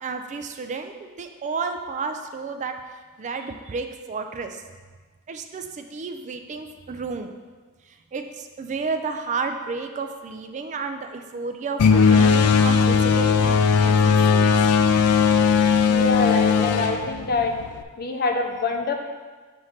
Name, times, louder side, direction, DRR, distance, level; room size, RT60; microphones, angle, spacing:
voice 1, 0.0-2.7 3.2-4.6 5.3-7.3 7.9-14.5, right 4 dB, 35° right, 6 dB, 0.3 m, -32 dB
sound 1, 11.8-17.8, left 6 dB, 85° left, 0.4 m, -18 dB
voice 2, 15.9-17.5 18.0-18.9, left 3 dB, 45° left, 3 dB, 0.7 m, -25 dB
6.2 x 3.1 x 5.7 m, 1.4 s
head